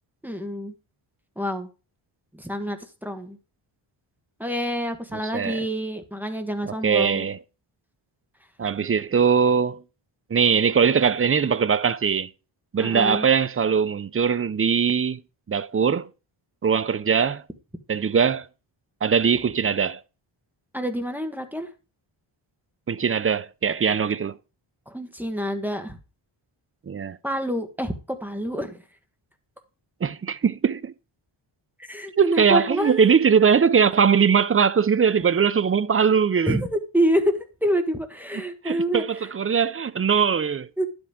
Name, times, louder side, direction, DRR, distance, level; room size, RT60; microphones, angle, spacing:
voice 1, 0.2-0.7 1.4-1.7 2.3-3.4 4.4-7.3 12.8-13.2 20.7-21.7 24.9-26.0 27.2-28.8 31.9-33.1 36.5-39.3 40.8-40.9, equal, 5° right, 1.3 m, -27 dB
voice 2, 5.3-5.7 6.6-7.4 8.6-9.8 10.3-12.3 12.7-15.2 15.5-16.1 16.6-17.4 17.9-18.5 19.0-20.0 22.9-24.4 26.9-27.2 30.0-30.9 32.2-36.6 38.6-40.7, right 6 dB, 30° right, 0.5 m, -21 dB
11.0 x 7.9 x 3.6 m
wide cardioid pair, 120°, 50 cm